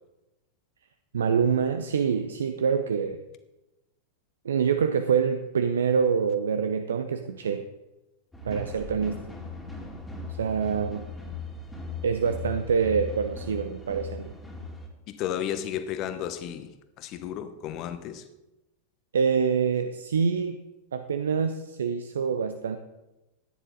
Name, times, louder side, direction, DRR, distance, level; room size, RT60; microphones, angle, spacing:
voice 1, 1.1-3.2 4.4-7.6 8.4-9.2 10.4-11.0 12.0-14.3 19.1-20.6 20.9-22.8, right 6 dB, 65° right, 0.7 m, -25 dB
sound 1, 8.3-14.9, left 3 dB, 5° left, 2.4 m, -38 dB
voice 2, 15.1-16.7 17.0-18.2, left 10 dB, 40° left, 1.1 m, -33 dB
14.5 x 10.0 x 3.9 m
figure-of-eight pair, 90°, 0 cm